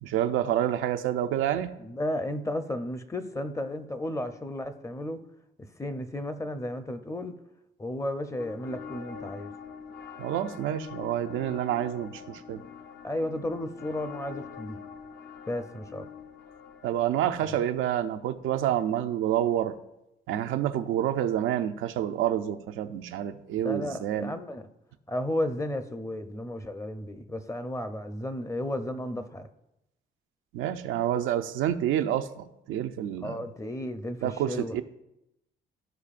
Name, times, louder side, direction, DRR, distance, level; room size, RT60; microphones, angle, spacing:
voice 1, 0.0-1.7 10.2-12.6 16.8-19.7 20.3-24.3 30.5-33.5 34.2-34.8, right 11 dB, 85° right, 8 dB, 0.5 m, -28 dB
voice 2, 1.8-5.2 5.8-7.3 7.8-9.5 13.0-14.8 15.5-16.1 17.4-17.5 23.5-24.7 25.1-29.5 33.2-34.8, left 1 dB, 15° left, 9 dB, 0.6 m, -33 dB
sound 1, 8.4-17.0, left 6 dB, 55° left, 0.8 m, -44 dB
13.5 x 4.7 x 2.5 m, 0.87 s
cardioid pair, 90°, 20 cm